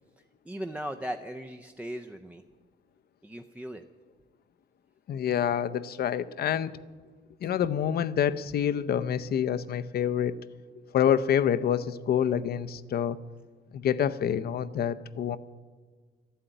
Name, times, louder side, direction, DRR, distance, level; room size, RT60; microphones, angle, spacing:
voice 1, 0.4-2.4 3.2-3.8, equal, 5° right, 5 dB, 0.5 m, -37 dB
voice 2, 5.1-6.7 7.4-10.4 10.9-13.2 13.7-15.4, left 9 dB, 55° left, 13 dB, 0.6 m, -27 dB
12.5 x 11.5 x 9.0 m, 1.5 s
cardioid pair, 160°, 19 cm